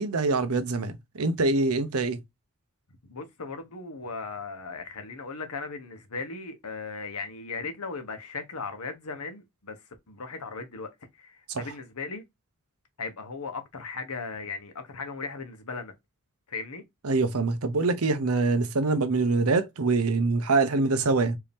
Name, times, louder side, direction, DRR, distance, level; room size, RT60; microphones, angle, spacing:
voice 1, 0.0-2.2 11.5-11.6 17.0-21.4, right 3 dB, 80° right, 0.8 m, -24 dB
voice 2, 3.0-12.2 13.0-15.9 16.5-16.8, left 4 dB, 85° left, 1.1 m, -37 dB
4.6 x 2.8 x 3.5 m
head